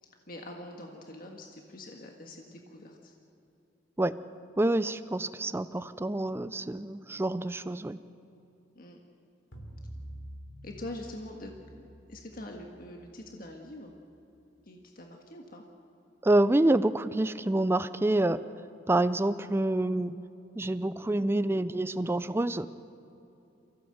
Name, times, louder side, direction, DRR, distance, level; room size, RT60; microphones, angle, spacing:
voice 1, 0.0-3.1 8.7-9.0 10.6-13.9 14.6-15.6, left 1 dB, 50° left, 2 dB, 1.7 m, -44 dB
voice 2, 4.6-8.0 16.2-18.4 18.9-20.2 20.6-22.7, right 1 dB, 15° right, 14 dB, 0.4 m, -27 dB
sound 1, 9.5-14.0, right 1 dB, 85° left, 3.3 m, -47 dB
24.0 x 16.0 x 8.0 m, 2.9 s
head